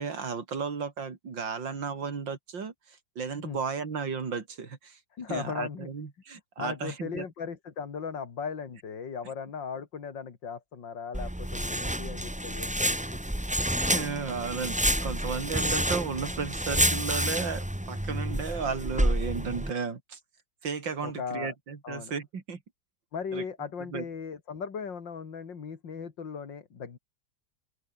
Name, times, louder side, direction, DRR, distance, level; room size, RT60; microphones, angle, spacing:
voice 1, 0.0-5.0 5.3-7.3 13.9-20.2 20.6-22.6 23.3-23.4 23.9-24.0, right 5 dB, 85° right, 3.3 m, -34 dB
voice 2, 5.2-5.9 6.6-13.2 21.0-21.5 21.8-22.1 23.1-27.0, left 6 dB, 80° left, 3.0 m, -37 dB
sound 1, 11.1-19.7, right 1 dB, 5° right, 1.8 m, -29 dB
open air
omnidirectional pair, 2.0 m